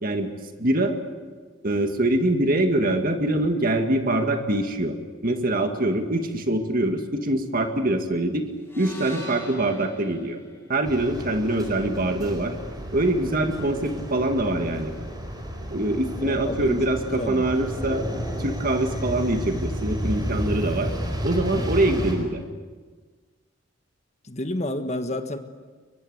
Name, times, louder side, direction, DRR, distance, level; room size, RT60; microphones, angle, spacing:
voice 1, 0.6-1.0 1.6-4.9 5.2-8.4 8.8-10.4 10.7-12.5 12.9-14.9 15.7-18.0 18.4-20.9 21.2-22.4, right 1 dB, 45° right, 5 dB, 2.1 m, -24 dB
sound 1, 8.6-12.8, left 1 dB, 10° left, 5.8 m, -45 dB
sound 2, 10.8-22.1, equal, 20° right, 4.6 m, -32 dB
voice 2, 16.2-17.5 24.2-25.4, left 1 dB, 35° left, 7 dB, 1.5 m, -30 dB
23.0 x 23.0 x 8.1 m, 1.5 s
head